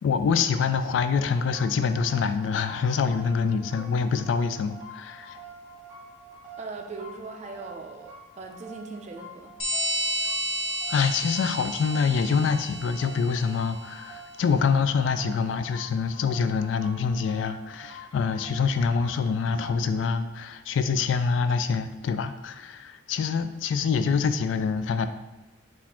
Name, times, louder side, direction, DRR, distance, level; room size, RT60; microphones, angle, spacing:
voice 1, 0.0-5.4 10.9-25.1, left 5 dB, 75° left, 10 dB, 0.3 m, -25 dB
sound 1, 1.2-19.9, right 2 dB, 20° right, 1.4 m, -47 dB
voice 2, 3.7-4.2 6.6-9.5, right 3 dB, 35° right, 3 dB, 0.4 m, -40 dB
sound 2, 9.6-13.9, right 1 dB, 25° left, 0.6 m, -31 dB
4.1 x 2.5 x 4.2 m, 1.1 s
head